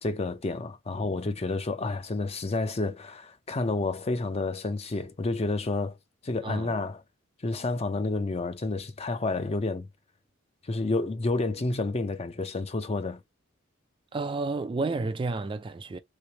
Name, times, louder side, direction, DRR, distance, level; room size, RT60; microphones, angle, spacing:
voice 1, 0.0-6.0 6.2-7.0 7.4-9.9 10.6-13.2, left 2 dB, 30° left, 0.5 m, -30 dB
voice 2, 14.1-16.0, right 3 dB, 25° right, 0.3 m, -31 dB
3.2 x 2.9 x 2.8 m
head